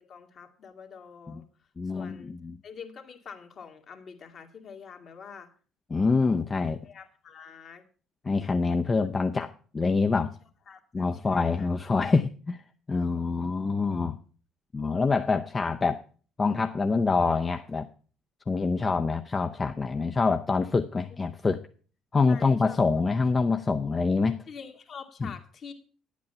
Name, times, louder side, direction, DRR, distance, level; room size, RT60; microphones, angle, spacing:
voice 1, 0.0-1.4 1.9-2.3 2.6-5.5 6.8-7.8 10.1-10.3 10.7-11.7 22.3-22.8 24.5-25.7, left 6 dB, 55° left, 4 dB, 2.0 m, -46 dB
voice 2, 1.8-2.6 5.9-6.8 8.2-10.3 10.9-12.6 12.9-14.2 14.7-16.0 16.4-17.9 18.5-21.6 22.1-24.4 25.2-25.3, left 4 dB, 30° left, 6 dB, 0.7 m, -26 dB
10.5 x 8.4 x 5.5 m, 0.40 s
hypercardioid pair, 55°, 0 cm